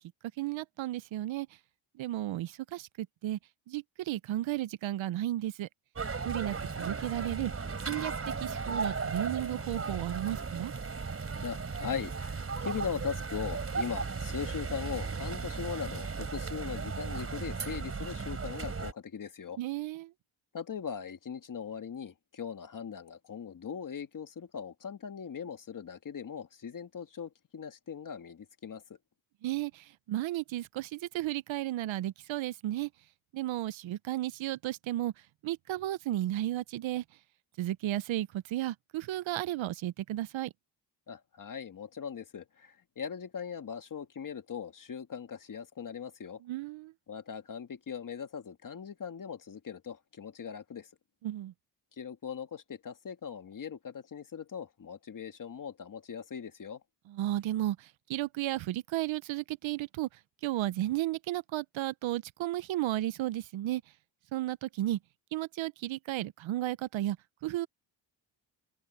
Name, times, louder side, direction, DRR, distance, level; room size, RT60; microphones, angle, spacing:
voice 1, 0.4-1.5 2.0-3.4 3.7-5.7 6.2-7.5 7.9-8.1 8.4-10.7 19.6-20.1 29.4-32.9 33.3-35.1 35.4-37.0 37.6-40.5 46.4-46.9 51.2-51.5 57.1-57.8 58.1-60.1 60.4-63.8 64.3-65.0 65.3-67.2 67.4-67.7, right 14 dB, 80° right, 0.7 m, -33 dB
sound 1, 5.9-18.9, right 4 dB, 30° right, 4.1 m, -36 dB
voice 2, 11.4-19.6 20.5-28.8 41.1-46.4 47.1-50.9 52.0-56.8, left 7 dB, 45° left, 1.8 m, -40 dB
cardioid pair, 125°, 46 cm